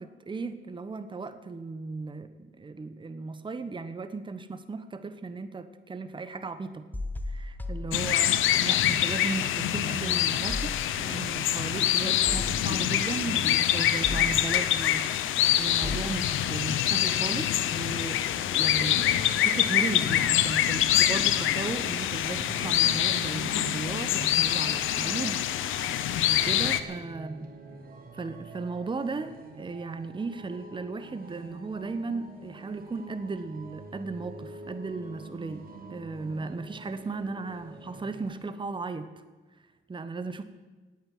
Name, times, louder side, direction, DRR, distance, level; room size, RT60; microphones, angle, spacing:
voice 1, 0.0-6.9 7.3-27.5 28.1-39.1 39.9-40.4, right 3 dB, 25° right, 10 dB, 1.1 m, -36 dB
sound 1, 6.9-8.6 8.9-17.6, left 2 dB, 10° left, 1.2 m, -39 dB
sound 2, 7.9-26.8, left 12 dB, 80° left, 0.9 m, -25 dB
sound 3, 18.6-38.4, right 3 dB, 45° right, 2.8 m, -46 dB
17.5 x 9.2 x 7.8 m, 1.3 s
cardioid pair, 90°, 20 cm